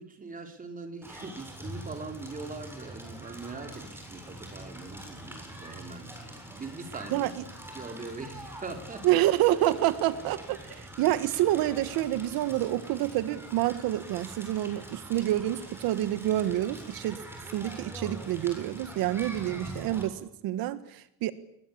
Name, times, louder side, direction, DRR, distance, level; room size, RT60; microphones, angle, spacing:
voice 1, 0.0-7.3 7.7-9.2, right 3 dB, 25° right, 5 dB, 4.0 m, -42 dB
Crackle, 1.0-20.0, right 1 dB, 5° right, 7.4 m, -44 dB
voice 2, 7.1-7.4 9.0-17.2 17.5-21.3, right 14 dB, 85° right, 12 dB, 1.5 m, -28 dB
29.0 x 21.5 x 8.6 m, 0.75 s
cardioid pair, 155°, 35 cm